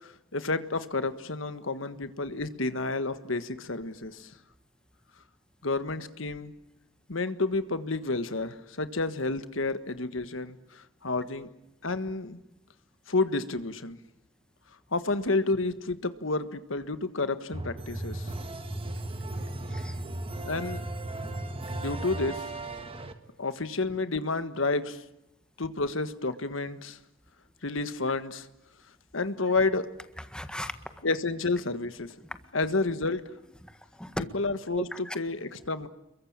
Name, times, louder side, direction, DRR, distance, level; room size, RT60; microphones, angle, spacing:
voice 1, 0.0-4.3 5.6-6.5 7.1-11.5 11.8-12.4 13.1-14.0 14.9-18.3 20.4-20.8 21.2-21.3 21.7-22.5 23.4-25.0 25.6-27.0 27.6-28.5 29.1-29.9 31.0-32.1 32.5-33.2 34.3-34.9 35.1-35.9, left 3 dB, 75° left, 11 dB, 1.6 m, -30 dB
sound 1, 17.5-23.1, right 2 dB, 30° right, 2.0 m, -36 dB
voice 2, 30.3-30.7 32.2-32.4 33.6-34.2 34.8-35.2, left 1 dB, 5° left, 9 dB, 1.6 m, -36 dB
29.0 x 23.0 x 8.9 m, 0.86 s
head